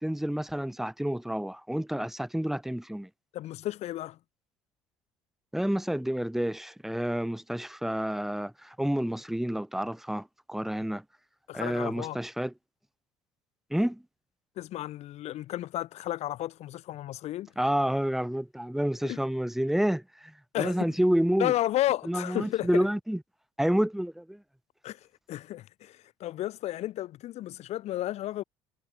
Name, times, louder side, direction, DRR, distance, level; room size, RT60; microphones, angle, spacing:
voice 1, 0.0-3.1 5.5-11.0 11.5-12.5 13.7-14.0 17.6-21.5 22.1-23.2 23.6-24.4, equal, ahead, 1.4 m, -29 dB
voice 2, 3.3-4.2 11.5-12.2 14.5-17.5 19.0-19.2 20.5-20.9 21.4-22.9 24.8-28.4, left 14 dB, 55° left, 3.6 m, -33 dB
figure-of-eight pair, 60°, 13 cm